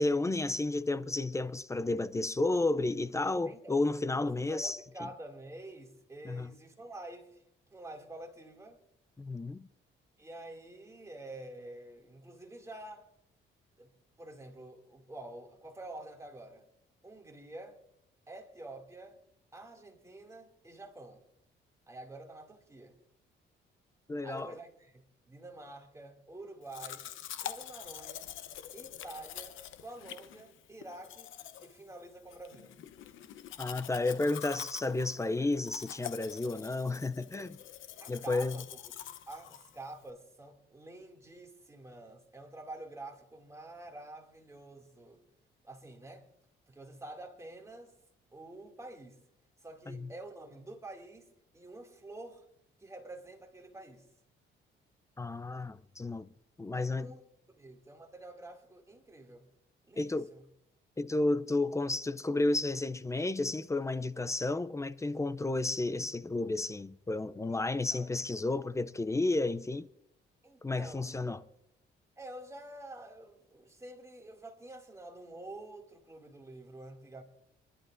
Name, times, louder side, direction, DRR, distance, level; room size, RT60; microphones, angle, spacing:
voice 1, 0.0-4.8 6.3-6.5 9.2-9.7 24.1-24.5 33.6-37.6 38.1-38.6 49.9-50.1 55.2-56.3 56.6-57.1 60.0-60.3 61.0-69.9 70.6-71.4, left 2 dB, 15° left, 0.5 m, -32 dB
voice 2, 3.5-3.8 4.1-7.4 7.7-8.8 10.2-13.1 13.8-13.9 14.2-16.6 17.0-17.8 18.3-19.2 19.5-21.2 21.9-23.0 24.2-27.1 27.4-28.3 28.7-31.3 31.6-32.8 38.0-38.9 39.3-45.2 45.6-46.3 46.7-47.9 48.3-49.2 49.6-52.5 52.8-54.1 56.7-59.5 59.9-60.4 67.5-67.6 67.9-68.1 70.4-71.4 72.2-77.2, right 2 dB, 15° right, 2.4 m, -48 dB
Domestic sounds home sounds, 26.7-40.1, left 11 dB, 80° left, 0.9 m, -46 dB
27.0 x 11.5 x 2.6 m
cardioid pair, 90°, 20 cm